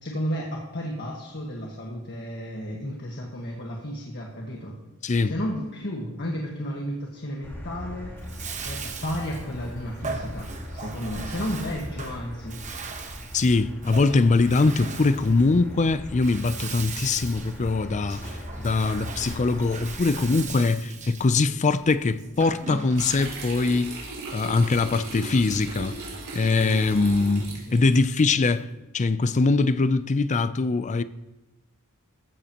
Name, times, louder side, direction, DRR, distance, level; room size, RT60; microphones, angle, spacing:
voice 1, 0.0-4.7 5.2-8.1 8.6-12.6 26.6-26.8 27.5-27.8, equal, 50° left, 1.6 m, -33 dB
Motor vehicle (road), 7.4-20.4, left 1 dB, 10° left, 2.9 m, -39 dB
Bathtub (filling or washing), 8.2-23.3, right 4 dB, 35° right, 1.1 m, -39 dB
voice 2, 13.3-24.0 24.3-26.0 26.3-28.7 28.9-31.0, left 3 dB, 35° left, 0.4 m, -22 dB
sound 1, 22.9-28.2, right 3 dB, 65° right, 4.5 m, -37 dB
15.0 x 13.0 x 3.0 m
head